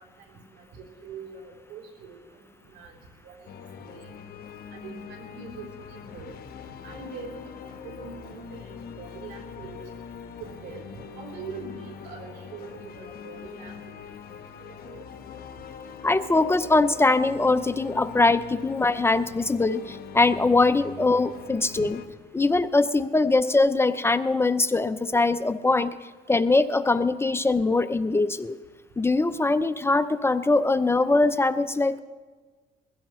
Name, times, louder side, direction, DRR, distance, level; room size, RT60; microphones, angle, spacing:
voice 1, 0.3-2.2 2.7-2.9 3.2-3.4 3.8-4.1 4.7-6.3 6.8-9.8 10.4-10.8 11.2-14.0 14.3-15.0 21.8-21.9, right 4 dB, 85° right, 0 dB, 3.6 m, -43 dB
sound 1, 3.5-22.1, left 7 dB, 65° left, 1.2 m, -42 dB
voice 2, 16.0-22.0 22.3-25.9 26.3-28.6 29.0-32.0, left 3 dB, 15° left, 12 dB, 0.5 m, -22 dB
21.5 x 16.0 x 3.1 m, 1.4 s
cardioid pair, 110°, 17 cm